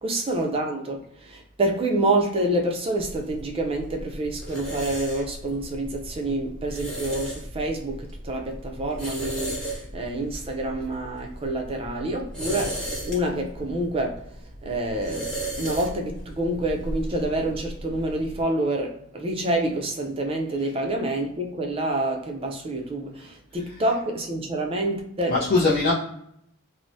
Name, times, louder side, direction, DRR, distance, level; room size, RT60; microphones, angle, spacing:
voice 1, 0.0-14.3 14.6-25.4, right 1 dB, 25° right, 0.4 m, -27 dB
sound 1, 3.0-18.4, right 1 dB, 5° left, 0.9 m, -36 dB
voice 2, 23.6-24.0 25.3-25.9, left 3 dB, 45° left, 0.5 m, -23 dB
3.2 x 2.0 x 2.6 m
head